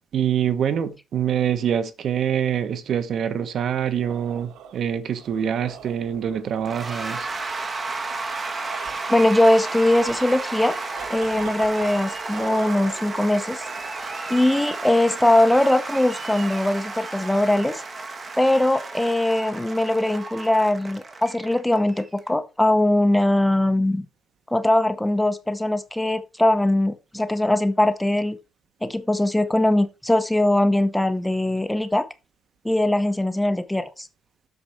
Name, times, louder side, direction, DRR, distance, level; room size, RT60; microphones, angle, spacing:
voice 1, 0.1-7.3, right 9 dB, 50° right, 1.2 m, -25 dB
sound 1, 3.8-14.1, right 8 dB, 85° right, 1.5 m, -43 dB
Cheering / Applause / Crowd, 6.7-22.3, right 3 dB, 25° right, 1.4 m, -33 dB
voice 2, 9.1-10.8 11.1-13.6 14.3-17.8 18.4-24.1 24.5-28.4 28.8-32.0 32.6-34.1, left 1 dB, 5° left, 0.8 m, -21 dB
8.1 x 6.8 x 4.5 m
cardioid pair, 140°, 0 cm